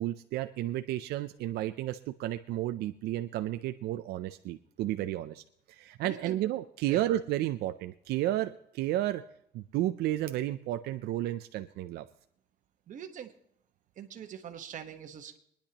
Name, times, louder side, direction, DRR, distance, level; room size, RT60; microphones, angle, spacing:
voice 1, 0.0-5.4 5.7-9.2 9.5-12.0, right 14 dB, 85° right, 9 dB, 0.5 m, -32 dB
voice 2, 6.0-6.4 6.9-7.1 12.9-13.3 14.0-15.4, right 9 dB, 50° right, 6 dB, 1.3 m, -43 dB
24.0 x 10.5 x 3.0 m, 0.74 s
cardioid pair, 140°, 16 cm